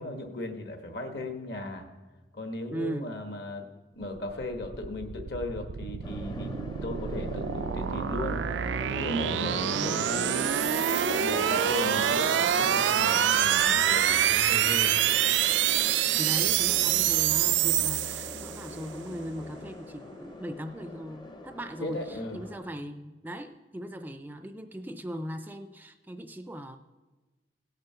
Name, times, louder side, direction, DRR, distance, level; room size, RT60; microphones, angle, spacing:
voice 1, 0.0-1.9 2.3-3.7 3.9-6.5 6.8-8.5 9.0-10.2 11.2-15.0 21.8-22.4, left 1 dB, 65° left, 5 dB, 1.4 m, -36 dB
voice 2, 2.7-3.1 9.7-10.0 16.2-26.8, equal, 10° right, 9 dB, 0.4 m, -38 dB
sound 1, 4.3-18.7, right 10 dB, 85° right, 0.4 m, -26 dB
sound 2, 6.0-22.6, left 2 dB, 25° left, 0.7 m, -41 dB
sound 3, 8.7-19.8, equal, 80° left, 1.4 m, -51 dB
17.0 x 6.6 x 5.7 m, 1.2 s
head